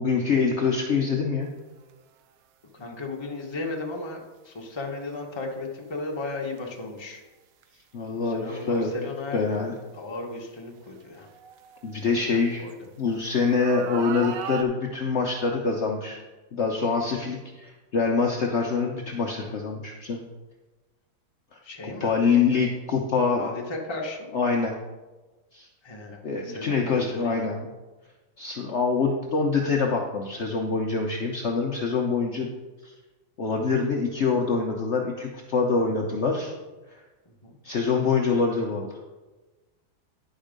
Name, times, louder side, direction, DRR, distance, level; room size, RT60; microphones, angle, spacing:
voice 1, 0.0-1.5 7.9-8.9 9.3-9.7 11.8-12.6 13.0-16.2 16.5-20.2 21.5-21.6 22.0-23.5 24.3-24.8 25.5-25.7 26.2-27.7 28.4-32.5 32.8-32.9 33.4-36.5 36.9-37.0 37.6-39.0, left 4 dB, 70° left, 0 dB, 0.6 m, -25 dB
sound 1, 1.8-2.0 3.4-3.5 6.5-6.7 7.6-7.7 8.7-8.8 9.5-9.6 10.9-12.7 13.6-14.6, right 8 dB, 90° right, 0.7 m, -36 dB
voice 2, 2.7-7.2 7.7-7.8 8.1-9.4 9.9-11.3 12.2-12.8 21.6-22.1 22.5-22.6 23.3-24.3 25.8-27.5 37.2-37.6, left 2 dB, 20° left, 0 dB, 0.8 m, -35 dB
10.0 x 5.3 x 5.2 m, 1.2 s
omnidirectional pair, 2.2 m